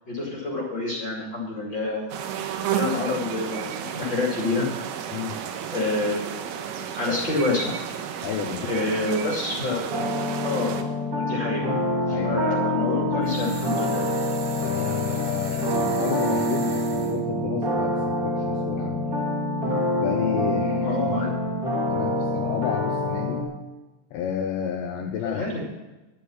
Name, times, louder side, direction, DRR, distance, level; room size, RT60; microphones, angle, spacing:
voice 1, 0.1-2.2 2.7-4.7 5.7-7.7 8.6-10.1 10.4-11.6 12.1-14.0 15.5-15.6 20.8-21.3 25.2-25.6, left 3 dB, 35° left, -3 dB, 2.1 m, -28 dB
sound 1, 2.1-10.8, right 8 dB, 85° right, 3.7 m, -32 dB
voice 2, 8.2-8.7 12.1-12.4 14.6-19.1 20.0-21.2 21.9-23.4 24.1-25.5, left 8 dB, 75° left, 3 dB, 2.7 m, -31 dB
sound 2, 9.9-23.4, left 1 dB, 25° right, 2.5 m, -26 dB
sound 3, 13.2-17.2, right 4 dB, 60° right, 3.6 m, -40 dB
12.0 x 8.3 x 8.7 m, 1.1 s
omnidirectional pair, 5.9 m